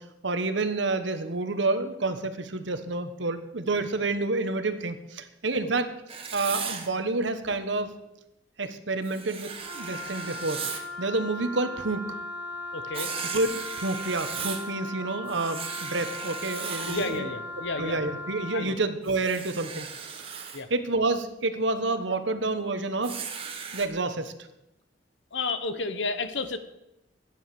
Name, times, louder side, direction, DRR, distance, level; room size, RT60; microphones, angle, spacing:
voice 1, 0.0-5.9 6.3-7.9 8.6-10.6 11.0-12.1 13.3-17.3 17.8-20.2 20.7-23.2 23.7-24.3, right 3 dB, 85° right, 9 dB, 1.3 m, -29 dB
Writing, 6.1-6.9 9.0-10.9 12.9-14.7 15.3-17.2 19.0-20.6 23.0-23.9, right 6 dB, 30° right, 1.5 m, -37 dB
Wind instrument woodwind instrument, 9.6-18.7, left 1 dB, 10° left, 6.4 m, -38 dB
voice 2, 12.7-13.1 16.9-18.0 18.5-18.8 20.5-20.7 25.3-26.6, left 3 dB, 85° left, 10 dB, 1.2 m, -31 dB
12.5 x 9.7 x 6.9 m, 0.91 s
head